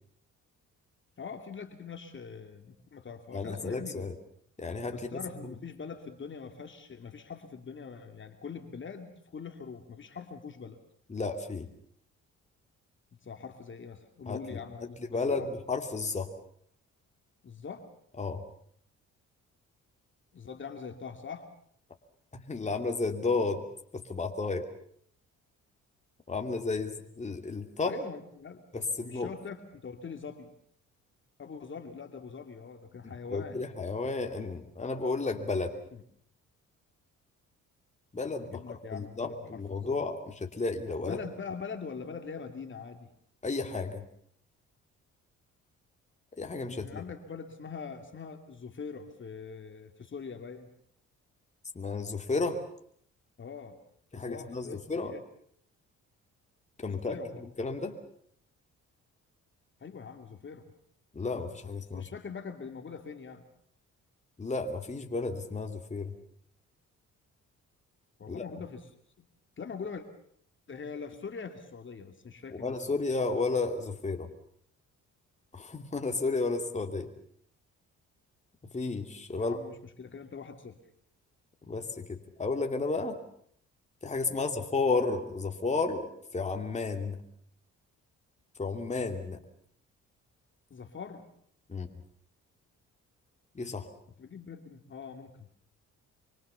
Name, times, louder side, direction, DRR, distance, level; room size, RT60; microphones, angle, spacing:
voice 1, 1.2-4.1 4.9-10.8 13.2-15.5 17.4-17.9 20.3-21.5 27.9-28.6 29.0-30.5 31.4-33.6 38.5-39.6 39.9-40.0 41.0-43.1 46.7-50.7 53.4-53.8 54.2-55.2 56.9-57.4 59.8-60.6 61.9-63.4 68.2-68.8 69.2-69.3 69.6-70.0 70.7-72.8 79.3-80.8 84.3-84.5 90.7-91.3 94.2-95.5, left 5 dB, 40° left, 6 dB, 2.8 m, -43 dB
voice 2, 3.3-4.1 4.6-5.5 11.1-11.7 14.3-16.3 18.2-18.4 22.3-23.7 23.9-24.7 26.3-28.0 28.7-29.3 33.0-35.8 38.1-41.2 43.4-44.0 46.4-47.0 51.7-52.6 54.1-55.1 56.8-58.0 61.1-62.1 64.4-66.1 68.3-68.4 72.5-74.3 75.5-77.1 78.6-79.6 81.7-83.2 84.0-87.2 88.6-89.4 91.7-91.9 93.5-93.9, left 3 dB, 25° left, 4 dB, 2.9 m, -32 dB
26.0 x 24.0 x 7.1 m, 0.65 s
cardioid pair, 90°, 30 cm